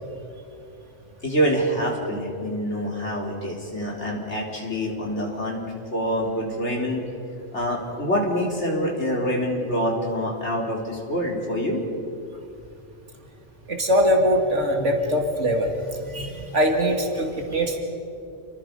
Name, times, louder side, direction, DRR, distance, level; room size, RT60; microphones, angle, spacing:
voice 1, 1.2-5.6 5.9-7.0 7.5-11.8, equal, 65° left, -2 dB, 4.4 m, -26 dB
voice 2, 13.7-17.8, equal, 75° right, 2 dB, 2.5 m, -22 dB
29.0 x 22.5 x 5.5 m, 2.6 s
omnidirectional pair, 1.2 m